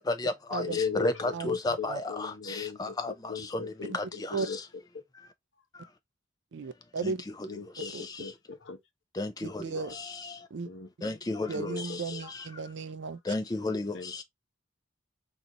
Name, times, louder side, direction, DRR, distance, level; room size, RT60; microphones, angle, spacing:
voice 1, 0.1-3.1 3.5-3.6 3.9-4.0 7.0-7.1 9.2-9.6 9.9-10.1 11.0-11.9 13.3-13.9, left 2 dB, 20° left, 0.4 m, -32 dB
voice 2, 0.6-4.6 7.5-8.8 10.6-10.9 11.3-12.3 13.9-14.2, left 5 dB, 65° left, 0.7 m, -37 dB
voice 3, 6.5-7.2 7.9-8.0 9.4-10.0 10.5-10.7 11.0-11.1 11.5-13.2, right 4 dB, 60° right, 0.4 m, -35 dB
3.9 x 2.5 x 2.8 m
head